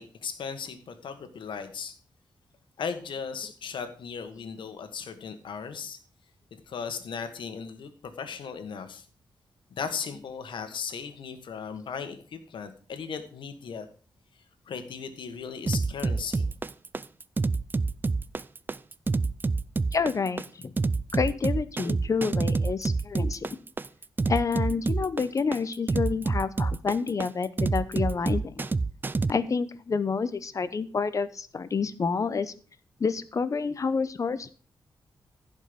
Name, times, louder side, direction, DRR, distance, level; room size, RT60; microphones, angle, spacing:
voice 1, 0.0-2.0 2.8-6.0 6.5-9.0 9.7-13.9 14.4-16.5, left 6 dB, 80° left, 8 dB, 1.6 m, -37 dB
sound 1, 15.7-29.3, right 3 dB, 25° right, 0.4 m, -27 dB
voice 2, 19.9-20.7 21.1-23.5 24.3-28.7 29.3-32.5 33.0-34.6, left 5 dB, 40° left, 14 dB, 0.8 m, -28 dB
15.0 x 5.4 x 5.2 m, 0.39 s
wide cardioid pair, 115°, 8 cm